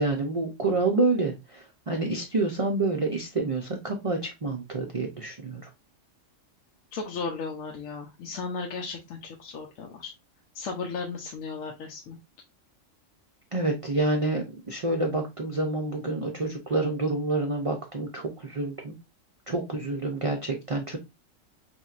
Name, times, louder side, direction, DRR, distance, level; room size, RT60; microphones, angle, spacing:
voice 1, 0.0-5.7 13.5-19.0 19.5-21.0, right 2 dB, 45° right, 2 dB, 0.4 m, -28 dB
voice 2, 6.9-10.1 10.5-12.2, left 4 dB, 85° left, 1 dB, 1.0 m, -35 dB
4.2 x 3.5 x 2.4 m, 0.24 s
omnidirectional pair, 1.3 m